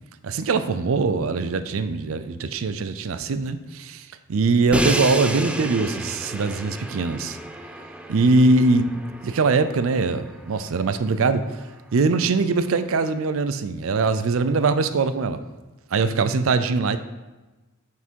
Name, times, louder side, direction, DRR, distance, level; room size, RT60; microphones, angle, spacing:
voice 1, 0.2-7.4 8.1-8.8 9.2-11.4 11.9-15.4 15.9-17.0, right 3 dB, 65° right, 11 dB, 0.5 m, -22 dB
Crash cymbal, 4.7-10.7, right 1 dB, 5° right, 0.4 m, -31 dB
6.0 x 5.8 x 4.5 m, 1.1 s
head